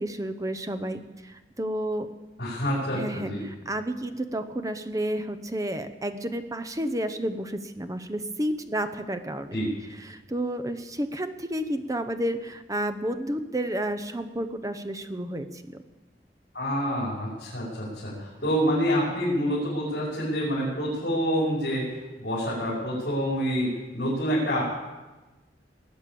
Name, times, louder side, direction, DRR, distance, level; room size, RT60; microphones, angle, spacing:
voice 1, 0.0-2.1 2.9-9.6 10.0-15.6, right 1 dB, 20° right, 9 dB, 0.9 m, -31 dB
voice 2, 2.4-3.4 9.5-9.7 16.5-21.9 22.2-24.6, equal, 65° left, -7 dB, 6.0 m, -27 dB
20.0 x 8.9 x 7.0 m, 1.2 s
head